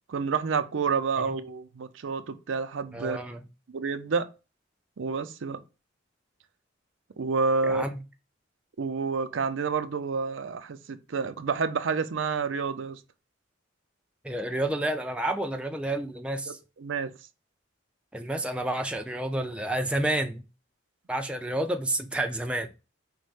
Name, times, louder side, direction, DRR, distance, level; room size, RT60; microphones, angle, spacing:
voice 1, 0.1-3.2 3.7-4.3 5.0-5.6 7.2-7.8 8.8-13.0 16.5-17.1, right 5 dB, 75° right, 0.5 m, -29 dB
voice 2, 2.9-3.4 7.6-8.0 14.2-16.6 18.1-20.4 21.1-22.7, right 1 dB, 5° right, 0.4 m, -30 dB
5.2 x 2.1 x 4.7 m
head